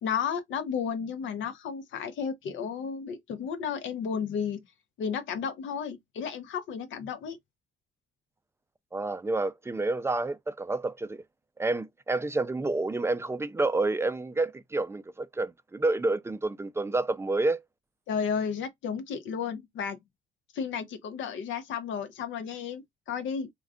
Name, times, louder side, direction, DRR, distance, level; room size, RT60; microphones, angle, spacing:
voice 1, 0.0-4.6 5.0-7.4 18.1-20.0 20.5-23.5, left 7 dB, 75° left, 0.6 m, -33 dB
voice 2, 8.9-11.2 11.6-17.6, right 2 dB, 15° right, 0.3 m, -29 dB
2.4 x 2.2 x 3.5 m
cardioid pair, 90°, 20 cm